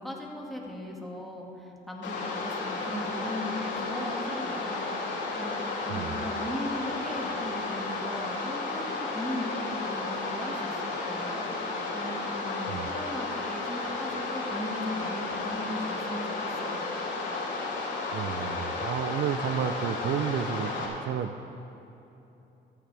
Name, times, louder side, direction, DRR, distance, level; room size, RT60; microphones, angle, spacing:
voice 1, 0.0-16.9, left 1 dB, ahead, -2 dB, 2.1 m, -38 dB
sound 1, 2.0-20.9, left 3 dB, 70° left, 3.0 m, -33 dB
voice 2, 5.9-6.2 12.7-12.9 18.1-21.3, right 9 dB, 65° right, 12 dB, 0.6 m, -31 dB
14.5 x 14.5 x 3.4 m, 3.0 s
cardioid pair, 90°, 20 cm